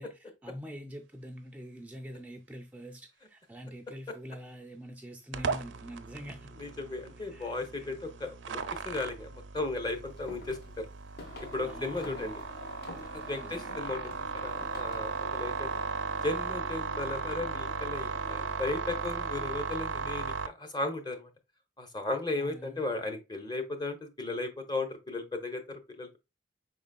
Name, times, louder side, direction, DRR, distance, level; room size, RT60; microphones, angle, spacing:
voice 1, 0.0-6.5 7.3-7.6 11.6-12.4 13.4-13.8 22.3-22.8, equal, 10° right, 0.3 m, -45 dB
sound 1, 5.3-20.5, right 5 dB, 85° right, 0.5 m, -36 dB
voice 2, 6.6-10.8 11.4-12.3 12.8-15.7 16.2-21.3 21.8-26.2, left 2 dB, 25° left, 0.7 m, -36 dB
sound 2, 10.0-15.2, left 1 dB, 55° left, 0.9 m, -51 dB
sound 3, 11.2-19.6, left 3 dB, 75° left, 1.6 m, -49 dB
5.2 x 3.9 x 2.2 m
head